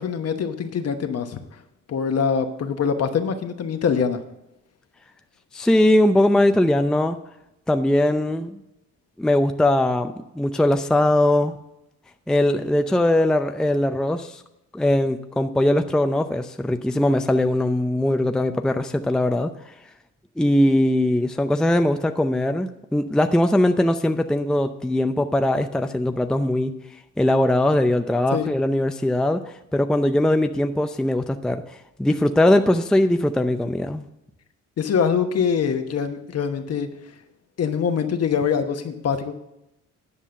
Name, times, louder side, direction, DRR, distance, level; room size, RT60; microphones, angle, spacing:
voice 1, 0.0-1.4 1.9-4.2 28.3-28.5 34.8-36.9 37.6-39.3, left 6 dB, 55° left, 7 dB, 1.2 m, -24 dB
voice 2, 5.5-7.2 7.7-8.6 9.2-11.5 12.3-14.4 14.7-19.5 20.4-26.7 27.2-31.6 32.0-34.0, left 1 dB, ahead, 7 dB, 0.5 m, -20 dB
10.0 x 5.5 x 6.5 m, 0.88 s
cardioid pair, 90°, 30 cm